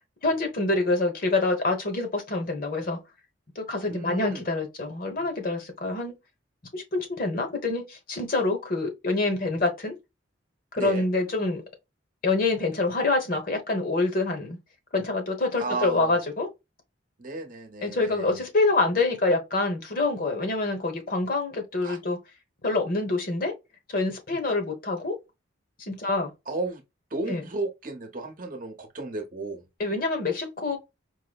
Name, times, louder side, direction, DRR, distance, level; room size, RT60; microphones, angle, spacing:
voice 1, 0.2-3.0 3.5-6.1 6.7-9.9 10.7-11.6 12.2-14.6 14.9-16.5 17.8-22.2 22.6-23.5 23.9-25.1 25.8-26.3 27.3-27.4 29.8-30.8, left 3 dB, 45° left, 1.1 m, -26 dB
voice 2, 3.8-4.4 10.8-11.0 15.6-16.2 17.2-18.4 21.8-22.0 26.5-26.8 27.1-29.6, right 3 dB, 45° right, 0.9 m, -33 dB
4.8 x 2.1 x 2.3 m
head